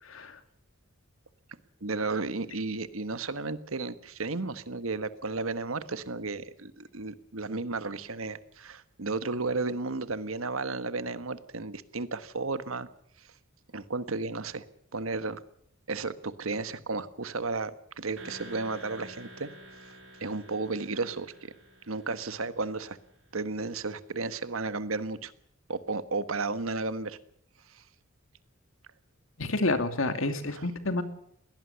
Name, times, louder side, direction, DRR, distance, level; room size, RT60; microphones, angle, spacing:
voice 1, 0.1-0.4 29.4-31.0, left 2 dB, 70° left, 9 dB, 2.6 m, -29 dB
voice 2, 1.8-12.9 13.2-13.3 13.7-14.6 14.9-15.4 15.9-19.5 20.2-21.5 21.9-23.0 23.3-25.3 25.7-27.2 27.7-27.8 30.5-30.7, right 3 dB, 85° right, 12 dB, 1.5 m, -33 dB
sound 1, 18.2-23.1, right 1 dB, 70° right, 5.4 m, -49 dB
21.5 x 18.0 x 7.0 m, 0.68 s
head